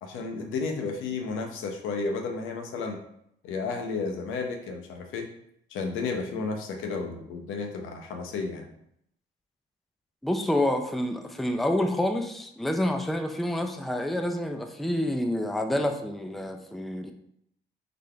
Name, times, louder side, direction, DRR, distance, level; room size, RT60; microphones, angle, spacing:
voice 1, 0.0-3.0 3.4-5.3 5.7-8.7, left 4 dB, 85° left, 3 dB, 0.8 m, -32 dB
voice 2, 10.2-17.1, left 1 dB, ahead, 5 dB, 0.4 m, -28 dB
4.0 x 3.5 x 3.3 m, 0.74 s
cardioid pair, 90°, 20 cm